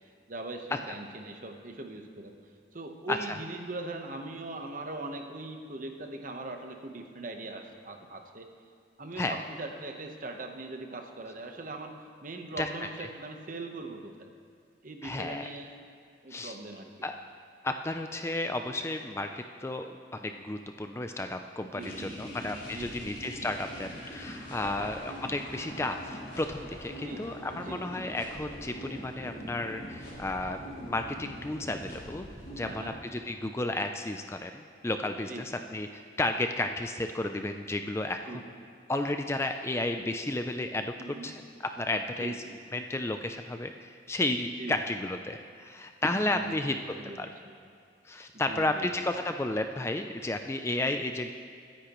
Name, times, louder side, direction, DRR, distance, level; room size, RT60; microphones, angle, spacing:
voice 1, 0.0-2.3 2.7-8.5 9.0-11.9 12.2-14.3 14.8-15.9 16.2-16.9 21.7-22.4 22.7-23.1 24.6-24.9 27.0-27.3 27.5-27.9 32.6-33.0 35.3-35.5 38.2-38.5 41.0-41.4 42.2-42.5 44.6-44.7 46.1-46.6 47.0-47.3 48.5-49.1 50.8-50.9, right 2 dB, 45° right, 4 dB, 1.0 m, -41 dB
voice 2, 15.0-15.5 16.3-16.6 17.0-17.2 17.6-32.3 32.6-38.5 38.9-42.4 42.7-46.8 47.2-47.3 48.0-51.3, left 2 dB, 15° left, 6 dB, 0.4 m, -33 dB
sound 1, 21.8-32.9, equal, 55° left, 3.8 m, -43 dB
22.0 x 9.9 x 3.1 m, 2.3 s
head